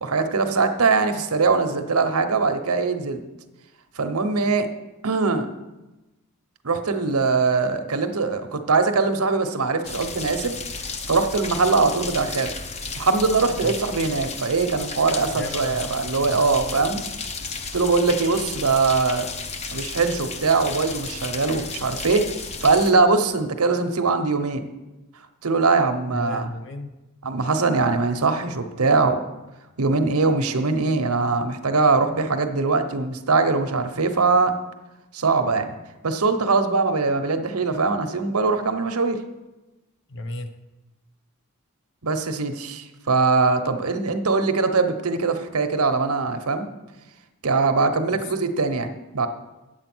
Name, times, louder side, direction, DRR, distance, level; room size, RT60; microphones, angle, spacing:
voice 1, 0.0-3.2 4.0-4.7 5.0-5.5 6.6-10.6 11.1-12.5 13.0-17.0 17.7-19.3 19.7-22.2 22.6-24.7 25.4-26.5 27.2-29.2 29.8-34.5 35.1-35.7 36.0-39.2 42.0-46.7 47.4-49.3, right 4 dB, 90° right, 7 dB, 1.0 m, -22 dB
leak in garage, 9.8-22.9, left 4 dB, 30° left, 0.7 m, -33 dB
voice 2, 15.3-15.8 16.2-16.8 26.1-26.9 40.1-40.5 48.1-48.2, left 2 dB, 55° left, 8 dB, 0.9 m, -34 dB
9.0 x 8.1 x 6.1 m, 1.1 s
head